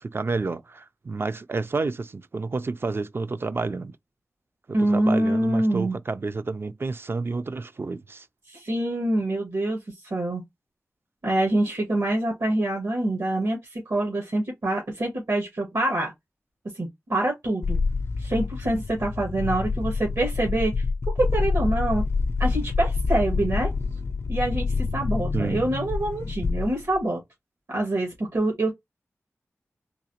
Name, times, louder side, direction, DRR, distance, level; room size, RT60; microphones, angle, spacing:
voice 1, 0.0-4.0 4.7-8.3 25.3-25.6, right 3 dB, 50° right, 0.4 m, -30 dB
voice 2, 4.7-6.0 8.5-10.4 11.2-16.1 16.7-17.8 18.2-20.8 21.2-22.0 22.4-23.7 24.3-27.2 27.7-28.7, right 1 dB, 70° right, 1.9 m, -25 dB
sound 1, 17.6-27.0, left 4 dB, 60° left, 0.4 m, -27 dB
3.9 x 2.8 x 2.8 m
wide cardioid pair, 70°, 5 cm